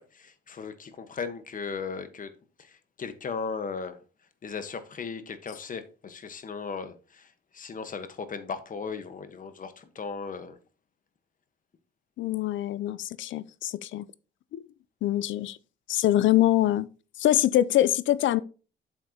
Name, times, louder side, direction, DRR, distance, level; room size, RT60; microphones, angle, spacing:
voice 1, 0.0-2.3 2.6-4.0 4.4-7.3 7.5-10.6, left 5 dB, 45° left, 1.3 m, -37 dB
voice 2, 12.2-14.1 14.5-14.6 15.0-15.6 15.9-16.9 17.2-18.4, left 13 dB, 75° left, 0.5 m, -24 dB
7.9 x 7.4 x 2.9 m
cardioid pair, 90°, 20 cm